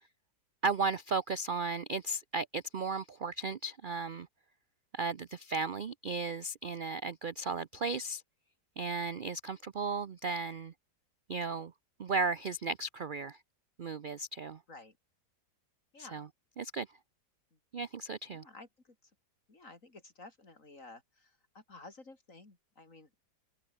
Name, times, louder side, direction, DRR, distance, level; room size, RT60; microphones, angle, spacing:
voice 1, 0.6-4.3 4.9-8.2 8.8-10.7 11.3-11.7 12.0-13.4 13.8-14.6 16.0-16.3 16.6-16.9 17.7-18.4, right 4 dB, 60° right, 0.5 m, -35 dB
voice 2, 15.9-16.3 17.5-17.6 18.3-19.1 19.5-23.1, left 3 dB, 50° left, 4.3 m, -53 dB
open air
omnidirectional pair, 1.8 m